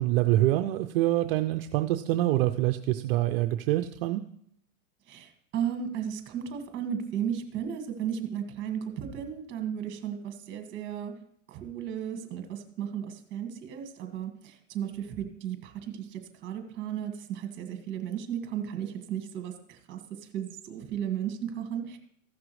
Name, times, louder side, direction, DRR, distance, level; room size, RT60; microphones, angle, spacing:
voice 1, 0.0-4.2, right 15 dB, 45° right, 7 dB, 0.5 m, -25 dB
voice 2, 5.1-11.1 11.5-22.0, right 9 dB, 30° right, 6 dB, 1.8 m, -35 dB
15.5 x 6.0 x 3.2 m, 0.70 s
hypercardioid pair, 135°, 39 cm